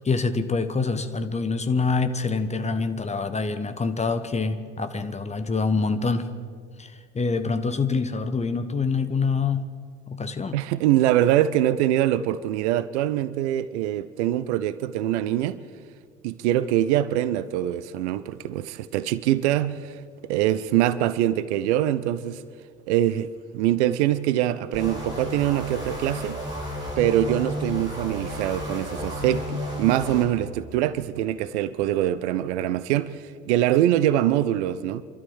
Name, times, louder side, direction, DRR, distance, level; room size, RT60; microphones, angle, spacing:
voice 1, 0.0-6.3 6.8-9.7 10.1-10.6, left 4 dB, 15° left, 1.3 m, -26 dB
voice 2, 10.5-15.6 16.2-22.4 22.9-26.4 27.0-35.0, right 12 dB, 60° right, 0.8 m, -24 dB
sound 1, 24.7-30.3, equal, 10° right, 7.2 m, -32 dB
28.5 x 12.5 x 7.2 m
figure-of-eight pair, 65°, 38 cm